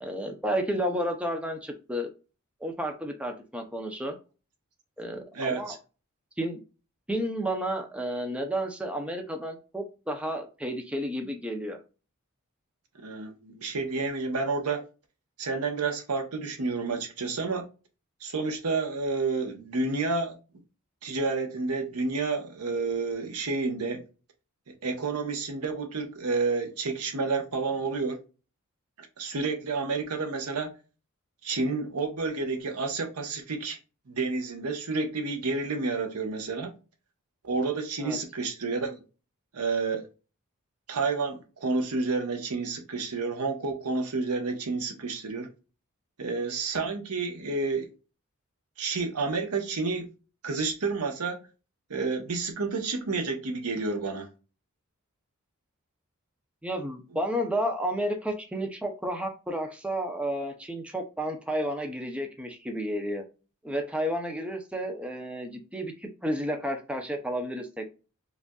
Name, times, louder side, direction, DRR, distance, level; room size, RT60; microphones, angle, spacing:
voice 1, 0.0-2.1 2.6-4.2 5.0-5.8 6.4-6.6 7.1-11.8 38.0-38.2 56.6-63.2 63.6-67.9, equal, 5° right, 0.5 m, -31 dB
voice 2, 5.3-5.8 13.0-14.9 15.4-17.7 18.2-20.4 21.0-24.0 24.7-28.2 29.0-30.8 31.4-33.8 34.1-36.7 37.4-39.0 39.5-40.1 40.9-45.5 46.2-47.9 48.8-50.1 50.4-51.4 51.9-54.3, right 4 dB, 85° right, 0.9 m, -30 dB
5.0 x 2.5 x 2.2 m
head